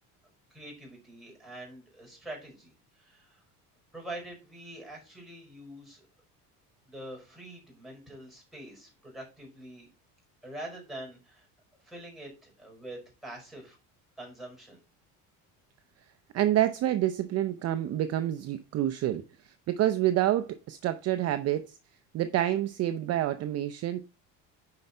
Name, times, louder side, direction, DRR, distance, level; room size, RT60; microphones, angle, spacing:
voice 1, 0.5-3.4 3.9-6.0 6.9-9.9 10.4-11.5 11.8-13.8 14.2-14.8, right 1 dB, ahead, 5.3 m, -45 dB
voice 2, 16.3-21.8 22.1-24.0, right 13 dB, 45° right, 0.6 m, -28 dB
9.6 x 5.4 x 4.4 m
cardioid pair, 155°, 37 cm